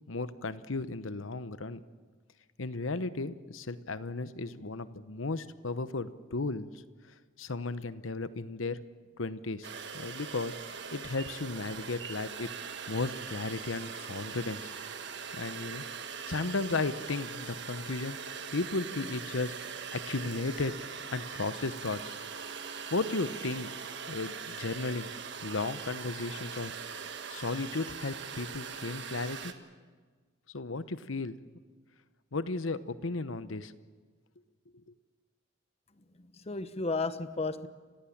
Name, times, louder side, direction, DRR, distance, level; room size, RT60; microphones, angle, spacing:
voice 1, 0.1-1.8 2.6-6.7 7.4-8.8 9.2-9.7 9.9-12.5 12.9-14.7 15.3-15.8 16.3-18.2 18.5-20.7 21.1-22.1 22.7-23.7 24.1-25.1 25.4-27.0 27.3-29.5 30.5-31.4 32.3-33.7 34.7-34.8, left 3 dB, 85° left, 13 dB, 1.0 m, -35 dB
sound 1, 9.6-29.5, right 6 dB, 60° right, 1.6 m, -41 dB
voice 2, 36.0-37.7, left 3 dB, 30° left, 12 dB, 1.0 m, -34 dB
29.5 x 16.0 x 8.7 m, 1.5 s
head